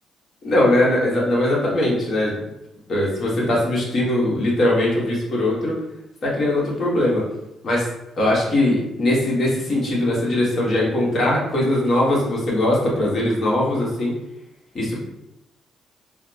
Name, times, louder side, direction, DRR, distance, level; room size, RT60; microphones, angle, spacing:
voice 1, 0.4-2.4 2.9-5.7 6.2-7.2 7.6-7.9 8.2-14.1 14.7-15.0, left 1 dB, 50° left, -4 dB, 1.3 m, -20 dB
4.0 x 2.0 x 2.8 m, 0.89 s
cardioid pair, 90°, 0 cm